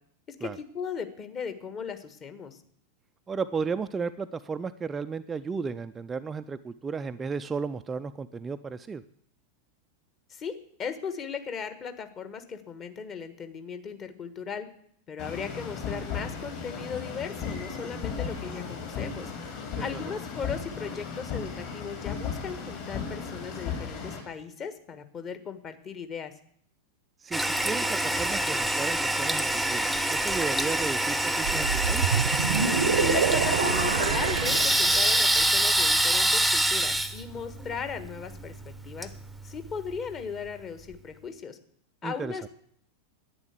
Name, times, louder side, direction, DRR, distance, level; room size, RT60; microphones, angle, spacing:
voice 1, 0.3-2.6 10.3-14.7 15.1-19.3 19.8-26.3 33.0-39.1 39.4-41.6 42.0-42.5, left 6 dB, 30° left, 9 dB, 1.4 m, -37 dB
voice 2, 3.3-9.0 19.8-20.0 27.2-32.1 42.0-42.4, right 5 dB, 15° right, 9 dB, 0.4 m, -34 dB
sound 1, 15.2-24.2, left 6 dB, 45° left, 4.7 m, -35 dB
Toilet flush, 27.3-40.0, right 1 dB, ahead, 0.8 m, -26 dB
sound 2, 31.4-35.4, right 7 dB, 65° right, 0.7 m, -27 dB
10.5 x 9.3 x 8.2 m, 0.66 s
figure-of-eight pair, 90°, 0 cm